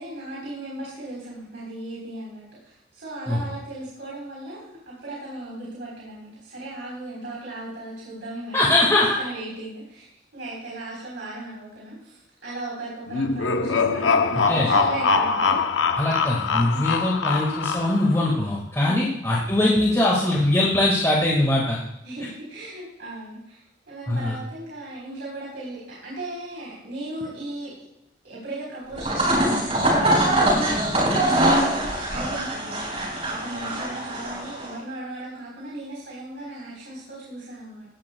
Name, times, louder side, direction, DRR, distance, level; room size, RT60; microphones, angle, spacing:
voice 1, 0.0-10.0 10.3-15.6 16.7-16.9 18.8-19.2 22.0-27.7 28.2-37.9, right 1 dB, 70° right, -5 dB, 3.8 m, -37 dB
voice 2, 8.5-9.2 14.5-14.7 15.9-21.8 24.1-24.4, left 1 dB, 15° left, -4 dB, 1.7 m, -21 dB
sound 1, 13.1-18.2, left 4 dB, 80° left, 0.7 m, -23 dB
sound 2, 28.9-34.7, right 1 dB, 35° right, 4.3 m, -23 dB
16.0 x 11.0 x 2.2 m, 0.82 s
head